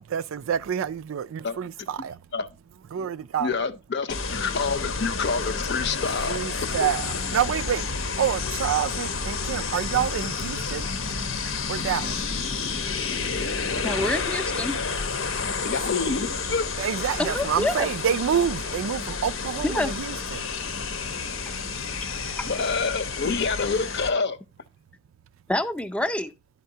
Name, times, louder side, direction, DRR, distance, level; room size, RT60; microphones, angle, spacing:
voice 1, 0.0-2.2 2.9-3.5 6.3-7.9 8.1-10.9 11.7-12.2 16.8-20.5, right 8 dB, 85° right, 0.4 m, -27 dB
voice 2, 3.4-6.4 6.8-6.9 15.6-16.7 22.4-24.4, left 4 dB, 60° left, 0.7 m, -27 dB
sound 1, 4.1-24.1, left 4 dB, 85° left, 0.9 m, -30 dB
voice 3, 13.8-14.8 17.2-17.9 19.6-19.9 21.5-21.6 22.4-22.5 25.5-26.3, left 1 dB, 5° left, 0.5 m, -27 dB
11.0 x 4.5 x 2.7 m
head